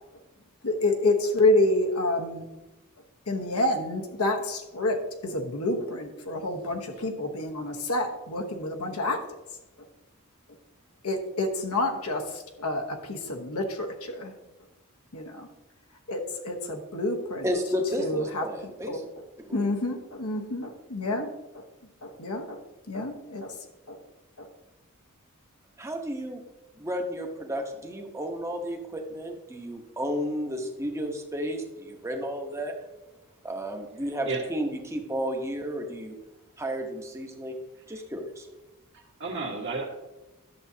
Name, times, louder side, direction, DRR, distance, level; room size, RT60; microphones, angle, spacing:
voice 1, 0.6-2.4 3.3-9.2 11.0-14.3 15.1-15.5 16.1-17.5 18.0-18.5 18.9-19.0 19.5-21.6 22.0-22.6 22.9-23.5 23.9-24.0 24.4-24.5, left 2 dB, 70° left, 3 dB, 1.1 m, -28 dB
voice 2, 17.4-19.0 19.5-19.6 25.8-26.4 26.8-32.7 33.4-36.1 36.6-37.6 37.9-38.5, equal, 15° right, 2 dB, 1.0 m, -32 dB
voice 3, 34.0-34.4 37.9-38.0 39.2-39.9, right 3 dB, 55° right, -1 dB, 1.7 m, -32 dB
11.0 x 7.1 x 2.8 m, 1.0 s
head